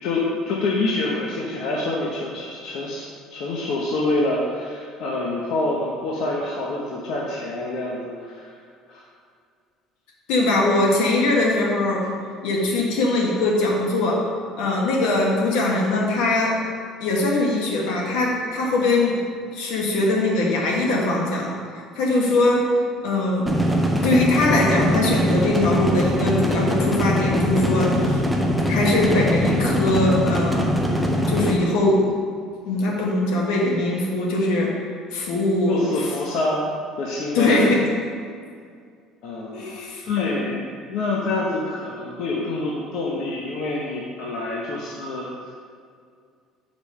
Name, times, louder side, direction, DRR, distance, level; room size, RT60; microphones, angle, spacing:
voice 1, 0.0-8.5 8.9-9.0 35.7-37.7 39.2-45.5, left 2 dB, 60° left, -3 dB, 0.9 m, -26 dB
voice 2, 10.3-12.1 12.4-14.3 14.6-16.6 17.0-19.2 19.5-22.7 23.0-23.5 24.0-28.2 28.7-30.7 31.3-32.0 32.6-34.8 35.1-35.8 37.3-37.9 39.5-40.0 40.5-40.6, left 2 dB, 80° left, -2 dB, 1.5 m, -21 dB
sound 1, 23.5-31.5, equal, ahead, 0.6 m, -22 dB
5.2 x 5.2 x 6.4 m, 2.2 s
cardioid pair, 175°, 0 cm